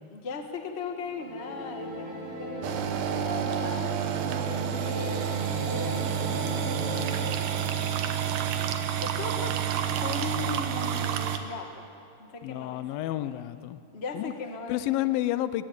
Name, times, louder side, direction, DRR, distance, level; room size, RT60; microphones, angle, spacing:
voice 1, 0.1-4.0 4.8-5.3 5.6-6.4 7.8-8.3 8.5-8.7 9.0-11.9 12.2-13.4 13.9-15.0, left 4 dB, 65° left, 4 dB, 0.6 m, -38 dB
sound 1, 1.0-7.4, equal, 40° right, 3.8 m, -37 dB
sound 2, 2.6-11.4, right 10 dB, 85° right, 2.9 m, -29 dB
Vehicle, 5.4-11.1, left 4 dB, 35° left, 2.2 m, -44 dB
voice 2, 12.4-13.8 14.1-14.3 14.7-15.7, left 14 dB, 85° left, 14 dB, 2.5 m, -30 dB
21.0 x 15.5 x 9.4 m, 2.6 s
omnidirectional pair, 4.1 m